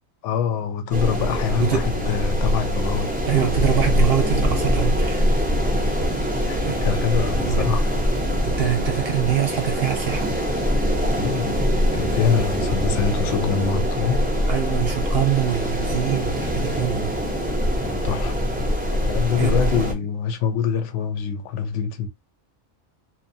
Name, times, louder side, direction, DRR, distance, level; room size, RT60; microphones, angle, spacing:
voice 1, 0.2-3.1 6.5-7.8 11.2-11.6 11.9-14.3 17.8-18.3 19.0-22.1, left 7 dB, 65° left, 0.8 m, -25 dB
sound 1, 0.9-19.9, equal, 10° right, 0.4 m, -23 dB
voice 2, 3.3-5.3 6.7-6.8 7.4-7.7 8.4-10.3 14.5-17.2 19.3-20.1, right 10 dB, 55° right, 0.8 m, -24 dB
2.7 x 2.2 x 2.6 m
omnidirectional pair, 1.5 m